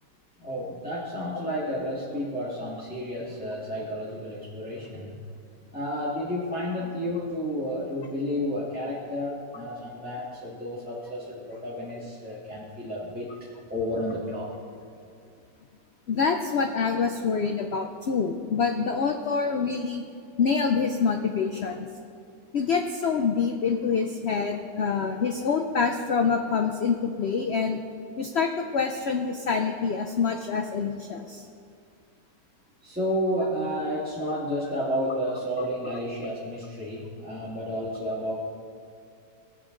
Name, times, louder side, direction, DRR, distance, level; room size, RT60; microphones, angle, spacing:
voice 1, 0.4-5.2 5.7-13.3 13.7-14.5 32.8-38.3, equal, 5° right, -9 dB, 1.7 m, -31 dB
voice 2, 16.1-20.1 20.4-21.9 22.5-27.8 28.2-31.4 34.2-34.3, left 5 dB, 85° left, 4 dB, 0.5 m, -26 dB
18.5 x 7.2 x 3.8 m, 2.4 s
omnidirectional pair, 1.9 m